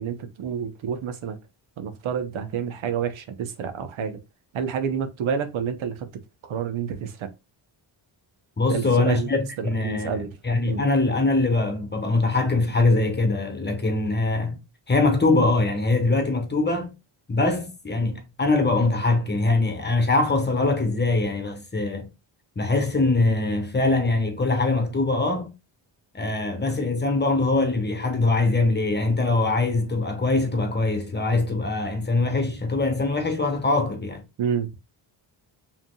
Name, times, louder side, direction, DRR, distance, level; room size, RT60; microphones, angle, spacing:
voice 1, 0.0-1.4 1.8-4.2 4.5-6.1 6.4-7.3 8.7-9.3 9.6-10.3 10.6-10.8 34.4-34.7, right 7 dB, 80° right, 0.9 m, -29 dB
voice 2, 8.6-14.6 14.9-16.9 17.3-22.1 22.6-25.5 26.1-34.2, left 3 dB, 20° left, 1.1 m, -23 dB
5.1 x 3.5 x 2.2 m
cardioid pair, 95°, 47 cm